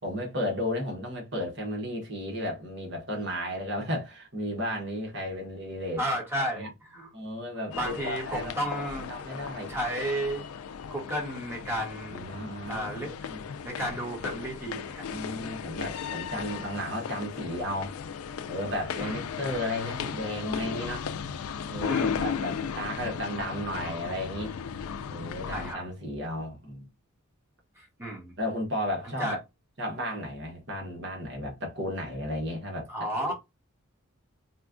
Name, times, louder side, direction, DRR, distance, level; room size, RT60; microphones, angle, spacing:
voice 1, 0.0-6.0 6.4-6.7 7.1-8.5 9.1-9.8 12.1-13.4 15.1-18.0 18.5-21.1 21.7-24.5 25.1-26.9 28.4-29.4 29.8-33.3, equal, 55° right, 1.2 m, -34 dB
voice 2, 6.0-7.1 7.7-9.1 9.7-10.4 10.9-12.2 12.7-13.3 13.6-15.4 19.0-19.2 21.9-22.1 25.5-25.8 27.8-28.3 29.2-29.4 32.9-33.3, right 1 dB, 10° right, 1.1 m, -33 dB
sound 1, 7.7-25.7, left 7 dB, 85° left, 0.4 m, -36 dB
4.2 x 2.2 x 2.5 m
head